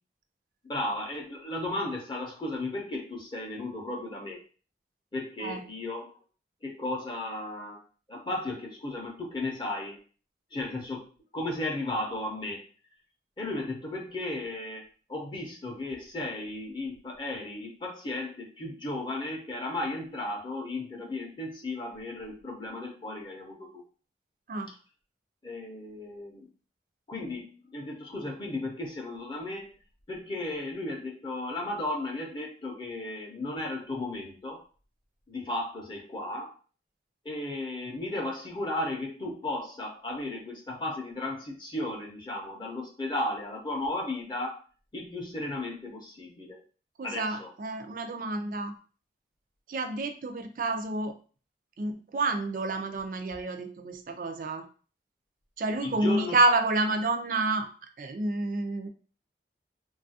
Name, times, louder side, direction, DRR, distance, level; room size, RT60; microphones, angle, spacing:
voice 1, 0.7-4.4 5.1-6.2 6.6-10.0 10.5-12.7 13.4-23.8 25.4-26.5 27.1-29.7 30.1-34.6 35.3-36.5 37.2-44.6 44.9-46.6 47.0-47.5 55.8-56.4, left 2 dB, 25° left, 0 dB, 0.5 m, -35 dB
voice 2, 47.0-48.7 49.7-51.1 51.8-54.6 55.6-57.7 58.0-58.9, right 2 dB, 50° right, 7 dB, 0.4 m, -29 dB
3.1 x 2.3 x 2.7 m, 0.39 s
head